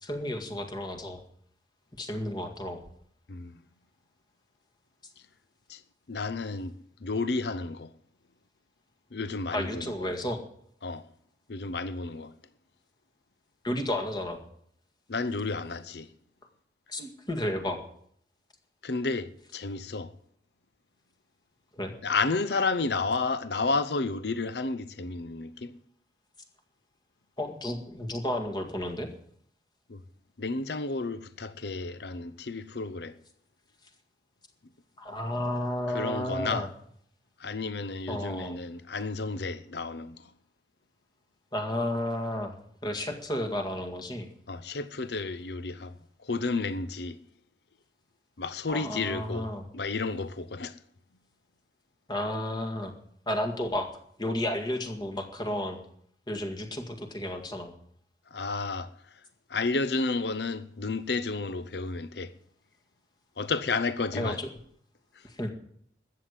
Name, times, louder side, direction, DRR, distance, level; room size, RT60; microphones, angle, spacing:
voice 1, 0.0-1.2 2.0-2.8 9.5-10.4 13.6-14.4 16.9-17.8 21.7-22.0 27.4-29.1 35.0-36.7 38.1-38.6 41.5-42.5 42.8-44.3 48.7-49.6 52.1-52.9 53.3-53.9 54.2-55.8 56.3-57.7 64.1-64.5 65.2-65.5, left 1 dB, 25° left, 2.0 m, -32 dB
voice 2, 3.3-3.6 5.7-5.8 6.1-6.8 7.0-7.9 9.1-10.1 10.8-11.1 11.5-12.3 15.1-16.1 18.8-20.1 22.0-25.7 29.9-30.0 30.4-33.2 35.9-36.7 37.4-40.3 44.5-47.2 48.4-50.8 58.3-59.2 59.5-62.3 63.4-64.4, left 3 dB, 65° left, 0.7 m, -31 dB
13.5 x 8.4 x 9.5 m
head